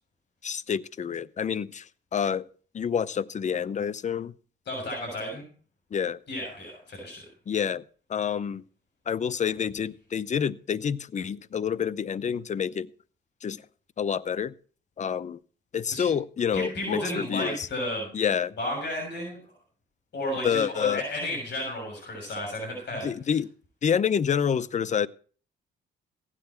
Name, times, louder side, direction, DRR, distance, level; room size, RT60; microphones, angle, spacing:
voice 1, 0.4-2.5 2.7-4.3 5.9-6.2 7.5-7.8 8.1-8.6 9.1-12.9 13.4-13.6 14.0-14.5 15.0-15.4 15.7-17.7 18.1-18.5 20.4-21.0 23.0-23.5 23.8-25.1, left 7 dB, 35° left, 18 dB, 0.7 m, -28 dB
voice 2, 4.7-5.4 6.3-7.2 15.9-16.1 16.5-18.1 18.6-19.4 20.1-23.1, left 1 dB, 60° left, 1 dB, 6.7 m, -32 dB
15.5 x 10.0 x 4.4 m, 0.40 s
cardioid pair, 90°, 20 cm